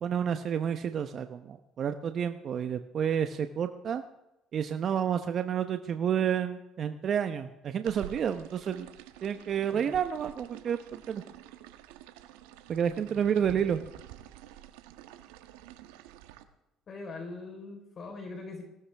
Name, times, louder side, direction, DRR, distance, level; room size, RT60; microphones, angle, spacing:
voice 1, 0.0-4.0 4.5-8.9 9.2-11.2 12.7-13.8, right 8 dB, 55° right, 8 dB, 0.9 m, -30 dB
sound 1, 7.9-16.4, right 13 dB, 85° right, 1.1 m, -49 dB
voice 2, 12.8-13.7 16.9-18.6, left 3 dB, 50° left, 3 dB, 4.1 m, -43 dB
22.0 x 18.0 x 3.5 m, 0.95 s
hypercardioid pair, 60°, 0 cm